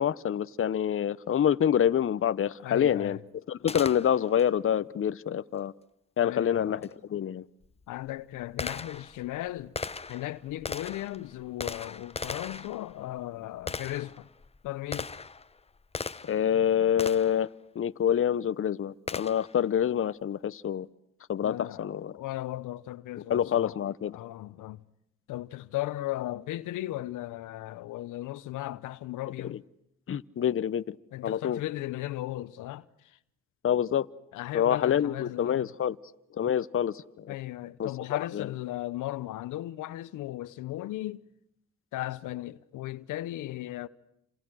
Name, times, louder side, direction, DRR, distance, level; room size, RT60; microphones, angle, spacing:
voice 1, 0.0-3.2 3.5-5.7 6.2-6.8 7.1-7.4 16.3-17.5 17.7-20.9 21.3-22.1 23.3-24.2 30.1-31.0 31.2-31.6 33.6-34.1 34.5-36.0 36.3-37.3 37.8-38.5, left 9 dB, 45° left, 0.9 m, -27 dB
voice 2, 2.6-3.2 6.2-6.9 7.9-9.7 10.1-14.3 14.6-15.1 21.4-23.8 24.1-24.8 25.3-29.6 31.1-33.2 34.3-35.7 37.3-41.2 41.9-43.9, left 15 dB, 90° left, 1.1 m, -36 dB
Gunshot gunfire, 3.7-4.5 6.8-6.9 7.6-16.5 17.0-17.5 19.1-19.6, left 4 dB, 20° left, 1.0 m, -39 dB
29.5 x 27.0 x 6.3 m
cardioid pair, 90°, 30 cm